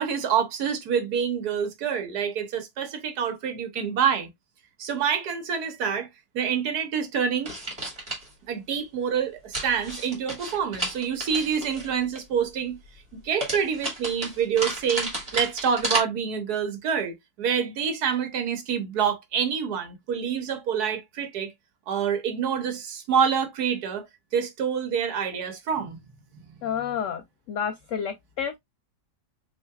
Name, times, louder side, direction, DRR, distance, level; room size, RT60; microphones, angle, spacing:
voice 1, 0.0-4.3 4.8-6.1 6.3-7.5 8.5-12.8 13.2-21.5 21.9-24.1 24.3-26.0 26.7-26.9, right 7 dB, 65° right, 1.4 m, -27 dB
sound 1, 7.4-8.3 9.5-12.2 13.4-16.0, right 1 dB, 20° right, 2.0 m, -32 dB
voice 2, 26.6-27.2 27.5-28.6, left 8 dB, 80° left, 0.6 m, -29 dB
5.6 x 3.2 x 2.3 m
omnidirectional pair, 1.9 m